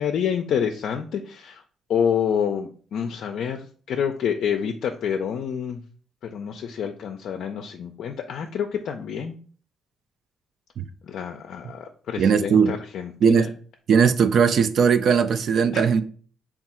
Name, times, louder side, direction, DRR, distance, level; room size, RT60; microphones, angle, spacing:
voice 1, 0.0-1.6 1.9-5.8 6.3-9.4 11.1-13.5 15.7-15.9, left 8 dB, 70° left, 0.3 m, -28 dB
voice 2, 12.2-12.8 13.2-13.5 13.9-16.0, right 6 dB, 60° right, 0.3 m, -18 dB
3.5 x 2.3 x 4.2 m
cardioid pair, 90°, 0 cm